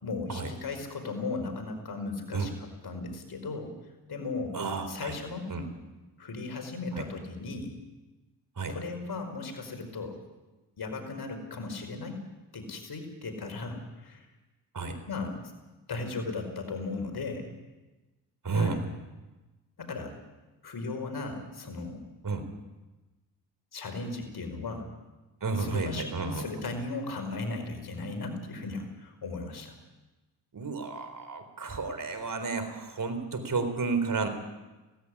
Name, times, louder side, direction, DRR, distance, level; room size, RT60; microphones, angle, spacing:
voice 1, 0.0-3.7 4.1-4.6 4.9-5.5 6.2-7.7 8.7-10.2 10.8-12.2 12.5-14.3 15.1-15.5 15.9-17.5 18.6-18.8 19.8-20.2 20.6-22.0 23.7-24.9 25.6-29.8, left 3 dB, 55° left, 5 dB, 5.1 m, -36 dB
voice 2, 4.5-5.2 5.5-5.6 6.9-7.0 8.6-8.7 14.7-15.0 18.4-18.8 22.2-22.4 25.4-26.5 30.5-34.3, right 4 dB, 45° right, 9 dB, 3.9 m, -31 dB
17.5 x 15.5 x 9.9 m, 1.1 s
supercardioid pair, 60°, 45 cm